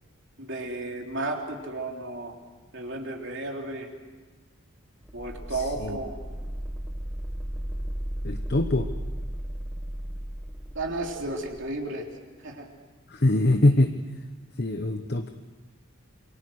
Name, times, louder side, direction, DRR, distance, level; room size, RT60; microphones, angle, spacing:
voice 1, 0.4-2.4 2.7-3.9 5.1-6.1 10.7-12.1 12.4-12.7, right 2 dB, 55° right, 1 dB, 3.5 m, -33 dB
sound 1, 5.0-11.7, equal, 5° right, 1.6 m, -35 dB
voice 2, 5.5-6.0 8.2-8.9 13.1-13.9 14.6-15.3, left 1 dB, 45° left, 6 dB, 1.0 m, -23 dB
27.5 x 24.0 x 6.4 m, 1.3 s
head